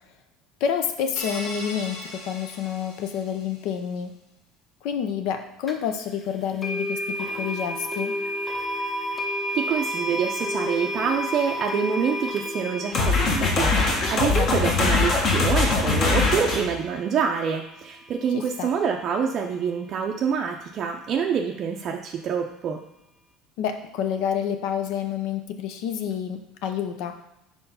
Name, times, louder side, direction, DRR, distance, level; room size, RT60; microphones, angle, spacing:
voice 1, 0.6-4.1 4.8-8.1 14.3-15.1 18.3-18.7 23.6-27.1, left 8 dB, 65° left, 6 dB, 0.6 m, -29 dB
sound 1, 1.2-3.6, left 1 dB, 90° left, 1.8 m, -38 dB
sound 2, 5.7-5.8 6.6-17.6, left 1 dB, 15° left, 0.9 m, -31 dB
voice 2, 9.5-22.8, right 7 dB, 40° right, 2 dB, 0.5 m, -26 dB
sound 3, 12.9-16.7, left 3 dB, 40° left, 1.3 m, -22 dB
4.5 x 4.4 x 5.5 m, 0.90 s
cardioid pair, 140°, 0 cm